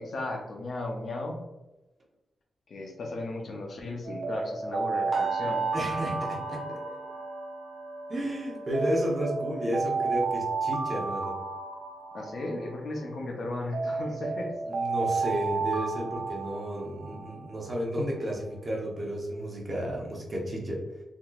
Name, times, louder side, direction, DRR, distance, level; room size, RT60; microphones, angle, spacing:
voice 1, 0.0-1.4 2.7-5.6 12.1-14.5, left 2 dB, 55° left, 1 dB, 0.6 m, -35 dB
Alarm, 4.0-8.2 8.7-13.2 13.7-17.5, right 4 dB, 75° right, 0.4 m, -32 dB
sound 1, 5.1-15.0 15.4-15.7 16.1-16.2, right 2 dB, ahead, 0.9 m, -43 dB
voice 2, 5.7-7.0 8.1-11.4 14.7-20.8, equal, 30° right, -2 dB, 0.7 m, -32 dB
3.6 x 2.8 x 2.3 m, 1.0 s
wide cardioid pair, 170°, 0 cm